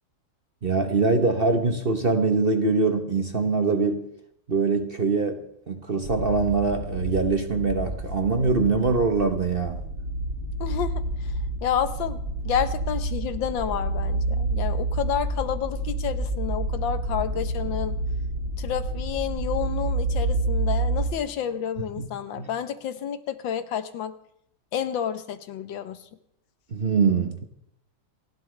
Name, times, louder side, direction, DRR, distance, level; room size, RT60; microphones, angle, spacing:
voice 1, 0.6-4.1 4.5-9.8 22.0-22.1 22.4-22.5 26.7-27.4, right 4 dB, 40° right, 6 dB, 1.0 m, -23 dB
sound 1, 6.0-21.1, right 2 dB, 75° right, 8.0 m, -29 dB
voice 2, 10.6-11.3 11.6-12.2 12.4-18.0 18.6-24.1 24.7-26.0, left 9 dB, 80° left, 12 dB, 1.7 m, -30 dB
29.0 x 12.0 x 3.3 m, 0.76 s
omnidirectional pair, 2.0 m